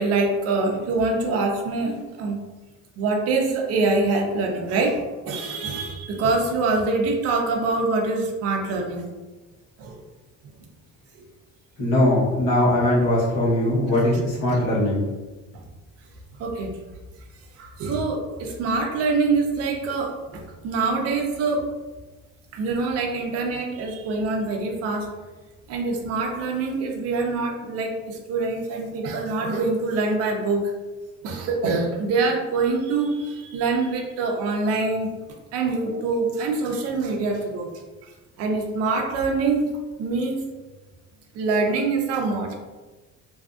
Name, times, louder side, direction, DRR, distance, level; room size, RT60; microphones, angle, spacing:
voice 1, 0.0-2.4 3.0-9.1 9.8-10.0 14.1-14.6 16.4-16.7 17.6-21.6 22.5-25.1 25.7-30.7 31.2-35.1 35.5-37.7 38.4-39.7 40.0-40.5 41.3-42.5, right 3 dB, 50° right, 1 dB, 0.5 m, -25 dB
voice 2, 11.8-15.0, left 1 dB, 50° left, -7 dB, 1.0 m, -20 dB
2.6 x 2.4 x 2.3 m, 1.2 s
cardioid pair, 170°, 32 cm